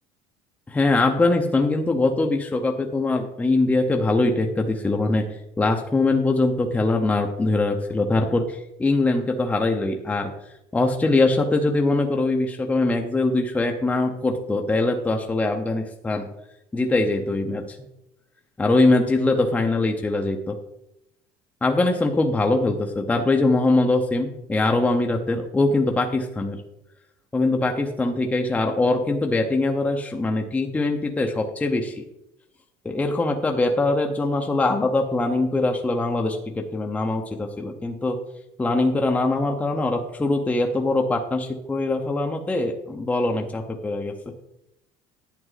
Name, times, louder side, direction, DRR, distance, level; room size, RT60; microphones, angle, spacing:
voice 1, 0.7-5.3 5.6-10.3 10.7-16.3 16.7-17.6 18.6-20.6 21.6-26.6 27.3-32.0 32.8-38.2 38.6-44.1, left 2 dB, 10° left, 3 dB, 0.8 m, -22 dB
11.0 x 8.6 x 4.0 m, 0.85 s
cardioid pair, 155°, 14 cm